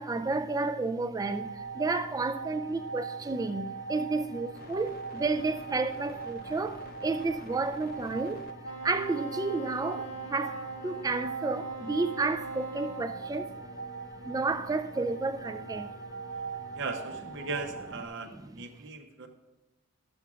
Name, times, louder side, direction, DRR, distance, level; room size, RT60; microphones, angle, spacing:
voice 1, 0.0-8.5 8.8-13.5 14.2-15.9 18.2-18.6, right 3 dB, 15° right, 0.3 m, -31 dB
sound 1, 1.2-18.1, right 4 dB, 45° left, 0.6 m, -41 dB
Wind instrument woodwind instrument, 8.6-13.1, right 2 dB, 90° left, 1.6 m, -43 dB
voice 2, 16.8-18.3 18.6-19.3, right 3 dB, 60° right, 0.8 m, -37 dB
12.5 x 7.0 x 2.4 m
head